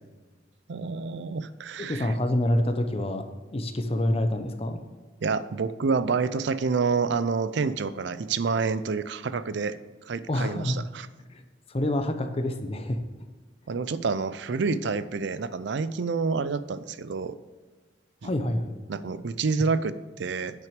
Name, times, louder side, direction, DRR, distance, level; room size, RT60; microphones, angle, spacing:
voice 1, 0.7-2.1 5.2-9.8 10.1-11.1 13.7-17.4 18.2-18.3 18.9-20.7, right 4 dB, 65° right, 14 dB, 0.5 m, -28 dB
voice 2, 1.8-3.2 3.5-4.8 10.3-10.8 11.3-11.4 11.7-13.0 18.2-18.7, left 1 dB, 30° left, 7 dB, 0.7 m, -27 dB
9.2 x 6.1 x 5.0 m, 1.4 s
head